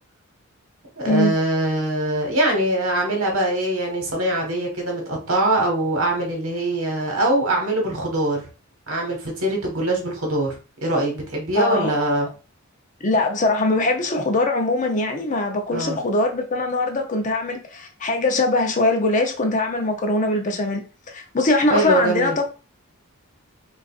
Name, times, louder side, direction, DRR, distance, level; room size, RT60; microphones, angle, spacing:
voice 1, 1.0-8.4 8.9-10.5 10.8-12.3 15.7-16.0 21.7-22.4, right 1 dB, 65° right, 1.4 m, -22 dB
voice 2, 11.5-11.9 13.0-22.5, left 2 dB, 35° left, 0.6 m, -22 dB
5.0 x 2.4 x 2.4 m
head